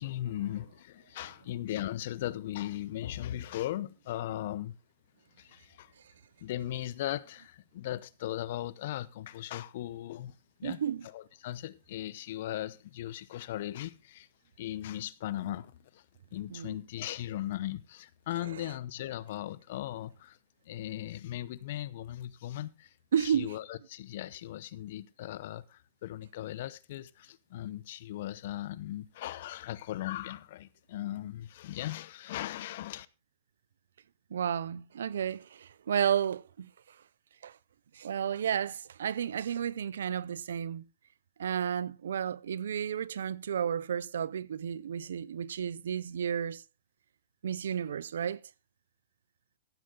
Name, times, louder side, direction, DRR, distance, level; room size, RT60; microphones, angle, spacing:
voice 1, 0.0-4.7 5.4-5.9 6.4-10.3 10.6-10.8 11.1-14.3 14.6-16.0 16.3-20.4 20.7-22.9 23.2-33.1, left 13 dB, 60° left, 0.8 m, -38 dB
voice 2, 10.6-11.1 16.5-16.8 23.1-23.5 34.3-37.0 37.4-37.6 37.9-40.8 41.4-46.6 47.4-48.4, right 8 dB, 80° right, 0.6 m, -32 dB
15.0 x 8.0 x 3.8 m
hypercardioid pair, 135°, 0 cm